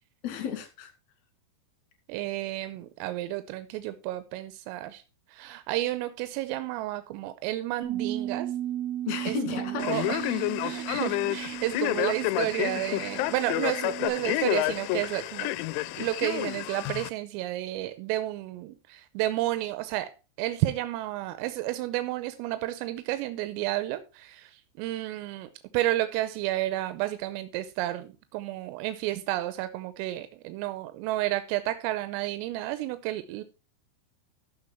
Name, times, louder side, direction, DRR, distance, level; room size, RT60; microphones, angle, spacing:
voice 1, 0.2-0.9 9.1-10.1, left 8 dB, 50° left, 2.5 m, -33 dB
voice 2, 2.1-5.0 5.3-8.5 9.3-9.4 9.8-15.5 16.0-20.1 20.4-24.5 24.8-33.4, right 15 dB, 90° right, 3.4 m, -31 dB
Bass guitar, 7.8-14.1, right 12 dB, 55° right, 2.2 m, -35 dB
Male speech man speaking, 9.8-17.1, left 17 dB, 80° left, 2.8 m, -30 dB
13.5 x 6.0 x 4.4 m
omnidirectional pair, 5.9 m